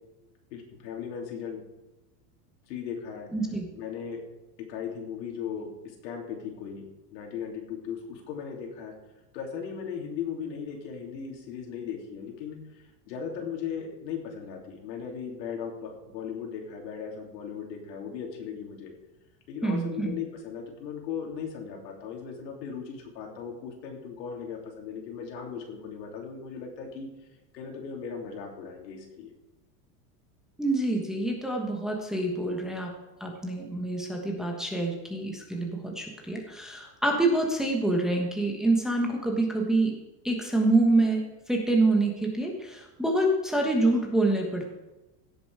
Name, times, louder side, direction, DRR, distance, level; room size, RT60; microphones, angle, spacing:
voice 1, 0.5-1.6 2.7-3.3 3.8-4.2 4.6-9.0 9.3-18.9 19.5-27.1 27.5-29.3, left 7 dB, 85° left, 1 dB, 3.4 m, -37 dB
voice 2, 3.3-3.7 19.6-20.2 30.6-32.9 33.2-39.9 40.2-44.7, right 2 dB, ahead, 0 dB, 1.3 m, -26 dB
16.5 x 7.1 x 4.9 m, 1.0 s
supercardioid pair, 155°, 49 cm